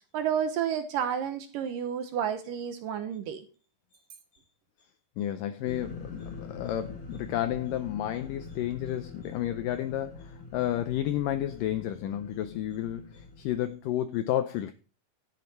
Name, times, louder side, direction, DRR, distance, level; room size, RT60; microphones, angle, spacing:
voice 1, 0.1-3.4, right 8 dB, 70° right, 2.3 m, -30 dB
voice 2, 5.2-14.7, left 12 dB, 85° left, 1.9 m, -31 dB
sound 1, 5.6-13.7, left 4 dB, 25° left, 3.2 m, -45 dB
12.0 x 8.5 x 4.2 m
omnidirectional pair, 4.6 m